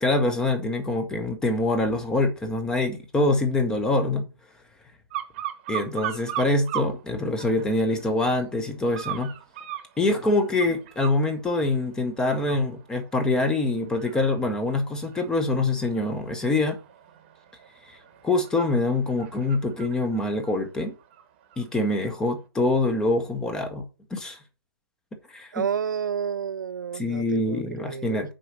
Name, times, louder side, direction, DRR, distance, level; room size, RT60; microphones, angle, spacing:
voice 1, 0.0-4.3 5.7-9.3 10.0-16.8 18.2-20.9 21.6-23.8 24.1-24.4 25.3-25.6 26.9-28.3, left 2 dB, 5° left, 0.6 m, -25 dB
sound 1, 5.1-6.9 7.4-8.0 8.9-11.2 11.7-12.0 12.3-21.6 22.0-22.2, right 12 dB, 25° right, 0.9 m, -38 dB
voice 2, 25.5-28.2, right 7 dB, 45° right, 0.4 m, -30 dB
6.3 x 4.7 x 6.4 m
figure-of-eight pair, 145°, 14 cm